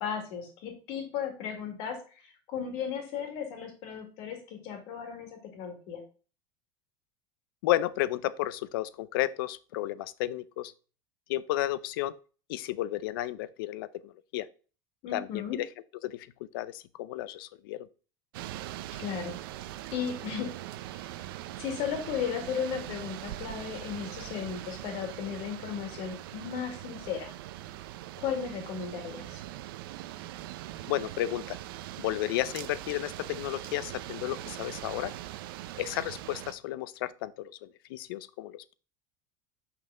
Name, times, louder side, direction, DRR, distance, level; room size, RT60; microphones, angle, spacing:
voice 1, 0.0-6.0 15.0-15.6 18.9-19.4 19.9-20.5 20.9-21.1 21.6-27.3 28.2-29.4, left 7 dB, 50° left, 1.9 m, -35 dB
voice 2, 7.6-10.7 11.3-12.1 12.5-14.5 15.1-15.7 16.0-16.3 16.5-17.9 30.9-31.6 32.0-35.1 35.8-38.8, left 15 dB, 80° left, 0.5 m, -32 dB
sound 1, 18.3-36.5, right 14 dB, 85° right, 0.5 m, -41 dB
5.7 x 5.5 x 3.7 m
cardioid pair, 175°, 12 cm